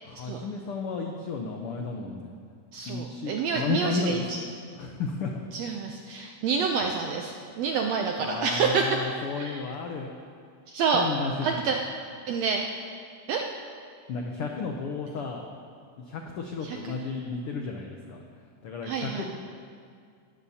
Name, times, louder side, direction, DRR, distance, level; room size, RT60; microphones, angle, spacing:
voice 1, 0.0-2.3 2.9-4.2 4.7-5.5 8.2-10.1 10.9-11.8 14.1-15.4 16.0-18.2 18.6-19.2, left 4 dB, 80° left, 2 dB, 1.2 m, -33 dB
voice 2, 2.7-4.4 5.5-9.0 9.4-9.6 10.7-11.1 11.4-11.8 12.3-12.8 13.3-13.4 16.6-17.0 18.9-19.2, right 5 dB, 80° right, 2 dB, 1.5 m, -28 dB
18.5 x 13.5 x 2.8 m, 2.2 s
omnidirectional pair, 3.6 m